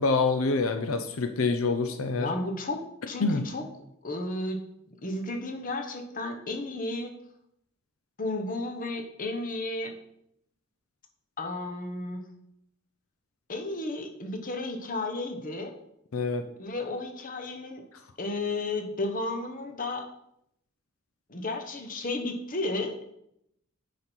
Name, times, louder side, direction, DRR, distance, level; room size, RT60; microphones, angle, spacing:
voice 1, 0.0-2.3 3.2-3.4 16.1-16.5, left 3 dB, 90° left, 8 dB, 0.7 m, -26 dB
voice 2, 2.2-3.7 4.0-4.6 5.0-7.1 8.2-9.9 11.4-12.2 13.5-15.7 16.6-17.8 18.2-20.1 21.3-23.0, left 2 dB, 40° left, 5 dB, 1.2 m, -33 dB
9.5 x 5.3 x 4.6 m, 0.75 s
head